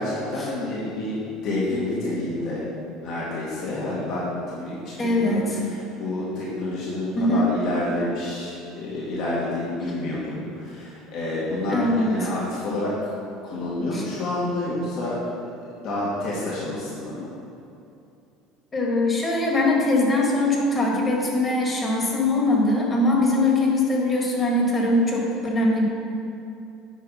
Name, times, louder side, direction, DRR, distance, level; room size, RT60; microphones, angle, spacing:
voice 1, 0.0-2.7 3.0-13.1 13.4-15.2 15.8-17.3, left 2 dB, 55° left, -6 dB, 1.8 m, -29 dB
voice 2, 5.0-5.6 7.1-7.5 11.7-12.2 13.9-14.0 18.7-25.8, left 2 dB, 25° left, -1 dB, 1.6 m, -21 dB
9.2 x 4.7 x 5.7 m, 2.7 s
cardioid pair, 135°, 0 cm